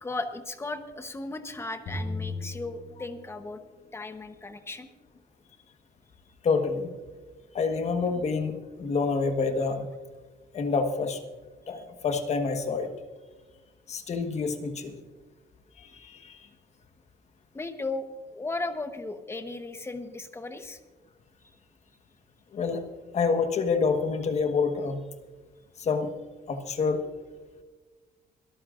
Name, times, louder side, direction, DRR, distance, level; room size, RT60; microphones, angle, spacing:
voice 1, 0.0-3.6 3.9-4.9 11.8-11.9 17.5-20.8, left 2 dB, 15° left, 8 dB, 1.0 m, -36 dB
sound 1, 1.9-3.6, left 2 dB, 60° left, 4.9 m, -36 dB
voice 2, 6.4-6.9 7.5-9.9 10.5-11.2 11.7-12.9 13.9-15.0 15.8-16.4 22.5-22.8 23.1-25.0 25.8-26.1 26.5-27.0, left 4 dB, 40° left, 6 dB, 1.4 m, -27 dB
23.5 x 13.5 x 2.5 m, 1.3 s
cardioid pair, 155°, 17 cm